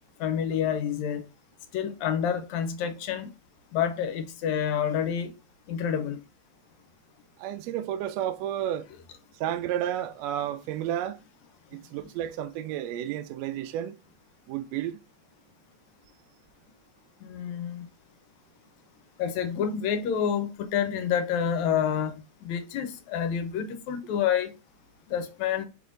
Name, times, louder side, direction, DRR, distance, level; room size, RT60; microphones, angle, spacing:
voice 1, 0.2-1.3 1.7-3.3 3.7-5.3 5.7-6.2 17.2-17.9 19.2-24.5 25.1-25.7, left 8 dB, 85° left, 1.9 m, -28 dB
voice 2, 7.4-8.9 9.3-11.2 11.7-13.9 14.5-15.0, right 11 dB, 80° right, 1.6 m, -31 dB
5.7 x 3.5 x 2.5 m
omnidirectional pair, 3.3 m